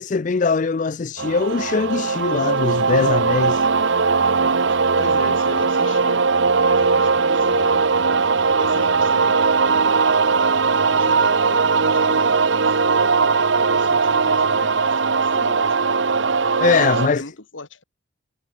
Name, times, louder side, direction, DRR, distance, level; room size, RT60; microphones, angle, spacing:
voice 1, 0.0-3.7 16.6-17.2, left 4 dB, 40° left, 0.4 m, -21 dB
sound 1, 1.2-17.1, right 4 dB, 70° right, 0.9 m, -19 dB
voice 2, 4.7-6.2 6.6-7.8 8.6-9.7 10.9-16.1 16.7-17.8, left 2 dB, 80° left, 2.6 m, -38 dB
head